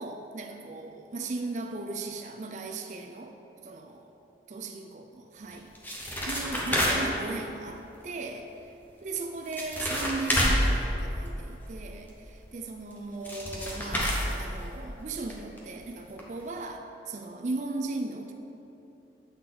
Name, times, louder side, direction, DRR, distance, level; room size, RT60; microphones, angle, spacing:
voice 1, 0.0-3.3 3.6-4.1 4.5-5.7 6.3-8.5 9.0-18.3, right 3 dB, 45° right, 3 dB, 0.4 m, -37 dB
sound 1, 5.5-7.3 9.2-9.3 9.5-11.7 12.9-13.0 13.2-15.0 15.3-15.4 15.6-15.7 16.2-16.3 16.6-16.7, equal, 10° left, 0.8 m, -28 dB
8.5 x 5.8 x 3.8 m, 3.0 s
head